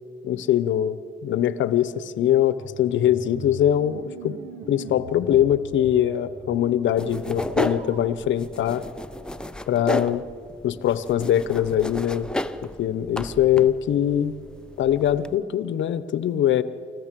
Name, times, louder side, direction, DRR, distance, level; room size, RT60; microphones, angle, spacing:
voice 1, 0.2-1.0 1.2-4.4 4.7-8.8 9.7-10.2 10.6-12.3 12.8-14.4 14.8-16.6, left 11 dB, 70° left, 15 dB, 0.9 m, -22 dB
sound 1, 2.6-8.1, right 3 dB, 85° right, 2.4 m, -40 dB
sound 2, 7.0-15.4, left 1 dB, 5° left, 0.7 m, -33 dB
25.0 x 14.5 x 7.6 m, 2.3 s
cardioid pair, 90°, 20 cm